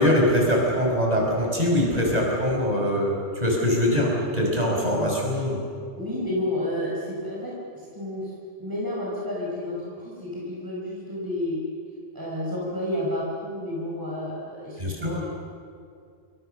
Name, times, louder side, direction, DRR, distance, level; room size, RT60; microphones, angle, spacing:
voice 1, 0.0-5.6 14.8-15.1, left 1 dB, 35° right, -2 dB, 6.2 m, -23 dB
voice 2, 5.9-8.3 8.6-11.6 12.1-15.3, left 1 dB, 15° right, -5 dB, 5.1 m, -31 dB
28.5 x 25.0 x 6.8 m, 2.3 s
omnidirectional pair, 1.2 m